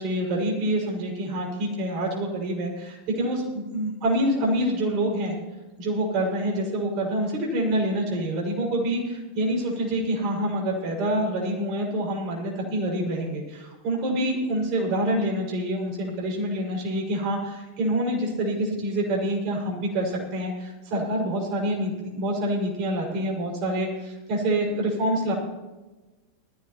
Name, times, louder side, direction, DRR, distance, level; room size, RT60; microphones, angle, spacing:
voice 1, 0.0-5.4 5.8-25.3, right 1 dB, 40° right, -2 dB, 5.8 m, -26 dB
20.0 x 15.0 x 3.1 m, 1.2 s
figure-of-eight pair, 90°, 0 cm